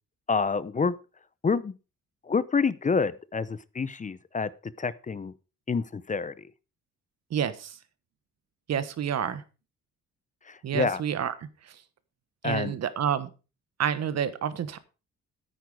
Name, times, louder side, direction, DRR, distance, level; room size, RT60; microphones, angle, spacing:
voice 1, 0.3-0.9 1.4-1.7 2.3-4.5 4.8-5.3 5.7-6.3 10.5-11.0 12.4-12.7, left 5 dB, 25° left, 18 dB, 0.7 m, -27 dB
voice 2, 7.3-7.8 8.7-9.4 10.6-11.3 11.6-11.8 12.4-13.3 13.8-14.8, right 8 dB, 60° right, 14 dB, 1.3 m, -29 dB
9.5 x 9.2 x 4.7 m, 0.33 s
cardioid pair, 90°, 30 cm